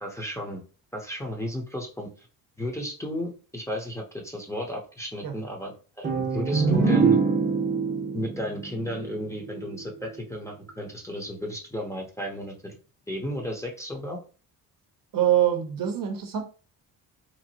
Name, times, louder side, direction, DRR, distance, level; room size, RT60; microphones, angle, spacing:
voice 1, 0.0-0.6 0.9-2.1 2.6-7.2 8.1-12.8 13.1-14.2, equal, 5° left, 0 dB, 0.8 m, -34 dB
sound 1, 6.0-9.7, right 5 dB, 30° right, 0.9 m, -24 dB
voice 2, 15.1-16.4, right 11 dB, 55° right, 4 dB, 0.8 m, -24 dB
2.9 x 2.5 x 2.8 m, 0.36 s
cardioid pair, 80°, 40 cm